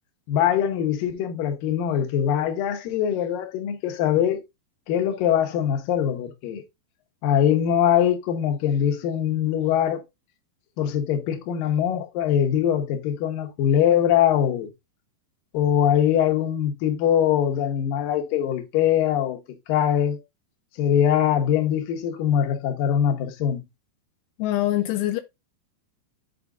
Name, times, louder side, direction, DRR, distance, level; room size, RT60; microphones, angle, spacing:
voice 1, 0.3-4.4 4.9-6.6 7.2-10.0 10.8-14.7 15.5-19.4 19.7-20.2 20.8-23.6, left 9 dB, 70° left, 2.3 m, -22 dB
voice 2, 24.4-25.2, left 14 dB, 85° left, 2.4 m, -24 dB
11.0 x 4.9 x 2.6 m
omnidirectional pair, 5.4 m